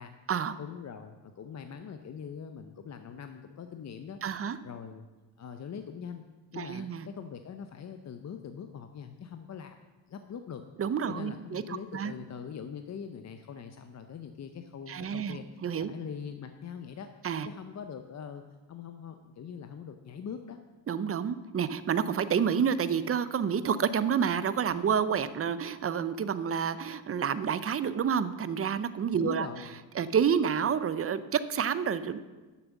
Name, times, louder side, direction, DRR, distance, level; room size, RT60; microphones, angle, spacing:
voice 1, 0.6-5.1 5.4-6.3 6.5-9.8 10.1-10.6 11.1-17.1 17.4-18.4 18.7-20.6 29.2-29.8, left 7 dB, 35° left, 7 dB, 0.6 m, -42 dB
voice 2, 4.2-4.6 6.6-7.0 10.8-11.6 11.9-12.1 14.9-15.9 17.2-17.5 20.9-29.5 30.0-32.2, right 7 dB, 30° right, 15 dB, 0.5 m, -29 dB
10.0 x 7.3 x 7.1 m, 1.2 s
cardioid pair, 130°, 46 cm